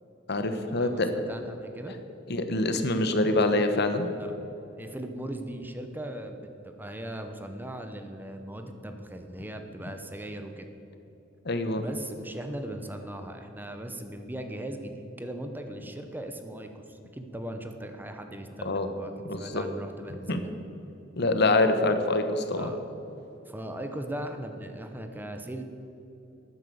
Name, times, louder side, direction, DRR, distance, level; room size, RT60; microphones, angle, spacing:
voice 1, 0.3-1.1 2.3-4.1 11.4-11.8 18.6-18.9 19.2-19.6 20.3-20.4 21.2-22.7, left 2 dB, 60° left, 8 dB, 1.2 m, -25 dB
voice 2, 0.8-2.0 4.2-4.3 4.8-10.7 11.8-19.1 19.4-20.5 22.6-22.8 23.5-25.6, right 1 dB, 10° right, 6 dB, 0.9 m, -38 dB
12.5 x 9.8 x 7.9 m, 2.9 s
head